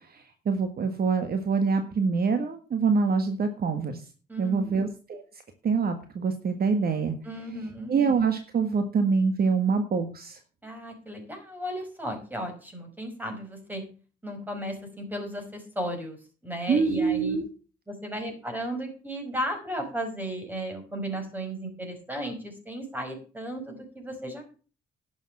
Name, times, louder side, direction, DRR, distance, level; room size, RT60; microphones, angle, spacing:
voice 1, 0.1-4.0 4.4-5.2 5.6-7.1 7.9-10.4 16.7-17.4, right 5 dB, 50° right, 7 dB, 1.6 m, -25 dB
voice 2, 4.3-4.8 7.2-7.9 10.6-13.8 14.2-16.2 16.4-17.4 17.9-24.4, right 1 dB, 10° right, 4 dB, 5.6 m, -35 dB
11.0 x 7.4 x 7.2 m, 0.38 s
cardioid pair, 90°, 20 cm